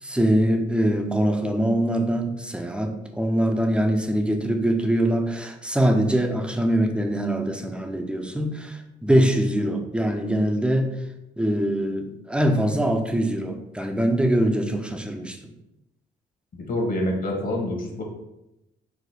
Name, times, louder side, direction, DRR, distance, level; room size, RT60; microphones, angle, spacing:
voice 1, 0.0-11.0 11.4-15.4, right 1 dB, 5° right, 4 dB, 0.5 m, -23 dB
voice 2, 16.5-18.0, left 1 dB, 45° left, 0 dB, 1.2 m, -26 dB
4.8 x 2.1 x 4.1 m, 0.90 s
cardioid pair, 90°, 20 cm